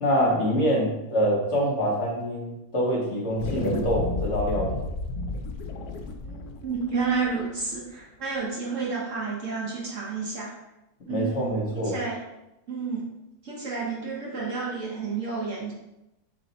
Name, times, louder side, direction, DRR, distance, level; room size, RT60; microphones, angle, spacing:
voice 1, 0.0-4.8 11.1-11.9, equal, 50° left, -4 dB, 1.2 m, -25 dB
sound 1, 3.4-8.0, left 3 dB, 75° left, 1.0 m, -32 dB
voice 2, 6.2-10.5 11.1-11.5 11.7-12.2 12.7-13.1 13.4-15.7, right 4 dB, 55° right, -4 dB, 1.2 m, -30 dB
3.9 x 3.3 x 4.0 m, 0.94 s
omnidirectional pair, 1.7 m